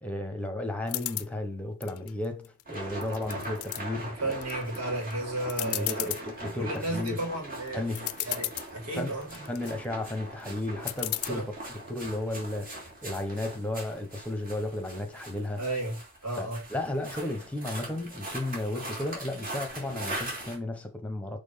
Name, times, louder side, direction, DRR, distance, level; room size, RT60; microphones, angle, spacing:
voice 1, 0.0-4.4 5.6-7.2 7.7-8.1 9.0-9.1 9.5-11.5 11.9-15.6 16.4-21.4, left 1 dB, 5° left, 1.1 m, -34 dB
sound 1, 0.9-1.3 1.8-2.6 3.0-3.8 4.3-4.8 5.1-5.2 5.5-6.2 6.8-7.1 7.7-7.8 7.9-8.7 9.2-9.7 10.9-11.3, left 17 dB, 70° left, 0.5 m, -34 dB
sound 2, 2.7-20.6, right 2 dB, 40° right, 2.7 m, -41 dB
voice 2, 4.0-6.1 6.4-7.8 8.3-9.4 11.3-11.5 15.6-16.6, right 2 dB, 80° right, 2.6 m, -33 dB
6.2 x 3.5 x 5.6 m
head